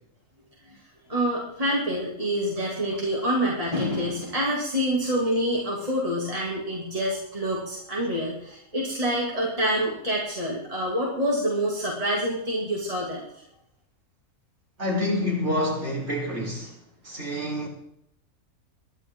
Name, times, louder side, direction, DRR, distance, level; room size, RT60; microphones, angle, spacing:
voice 1, 1.1-13.2, equal, 20° right, 3.1 m, -27 dB
voice 2, 14.8-16.7 17.0-17.7, left 1 dB, 45° right, 5.0 m, -27 dB
20.5 x 12.5 x 4.0 m
omnidirectional pair, 1.6 m